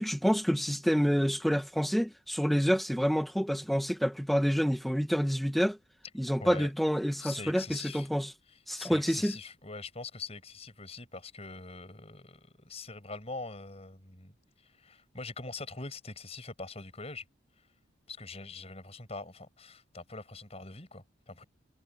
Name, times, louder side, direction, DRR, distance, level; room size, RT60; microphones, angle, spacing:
voice 1, 0.0-5.8 6.2-8.3 8.7-9.3, equal, ahead, 1.8 m, -28 dB
voice 2, 6.4-6.7 7.2-8.1 8.7-14.3 14.6-17.2 18.1-21.4, left 3 dB, 30° left, 5.9 m, -43 dB
head